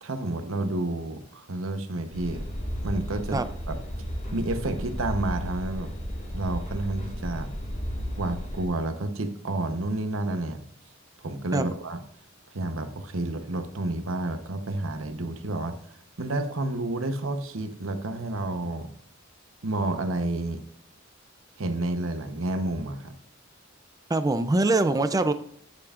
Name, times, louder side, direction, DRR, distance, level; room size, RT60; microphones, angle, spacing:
voice 1, 0.0-2.5 2.8-3.8 4.3-5.9 6.3-7.5 8.2-10.6 11.2-12.0 12.5-15.8 16.2-18.9 19.6-20.6 21.6-23.1, right 2 dB, 70° right, 7 dB, 0.9 m, -30 dB
sound 1, 2.1-8.6, equal, 35° left, 1.9 m, -34 dB
voice 2, 24.1-25.3, right 2 dB, 20° right, 11 dB, 0.4 m, -23 dB
9.6 x 8.6 x 2.5 m, 0.62 s
head